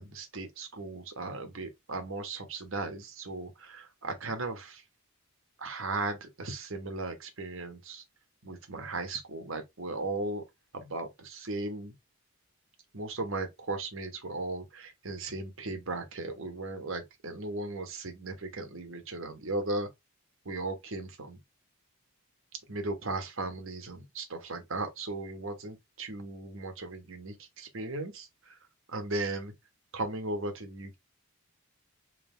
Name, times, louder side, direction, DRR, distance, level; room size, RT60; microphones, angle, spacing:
voice 1, 0.0-4.8 5.6-8.0 8.4-10.4 10.7-11.9 12.9-19.9 20.4-21.4 22.7-28.6 28.9-29.5 29.9-31.0, right 2 dB, 60° right, 1.2 m, -37 dB
3.6 x 3.3 x 3.2 m
head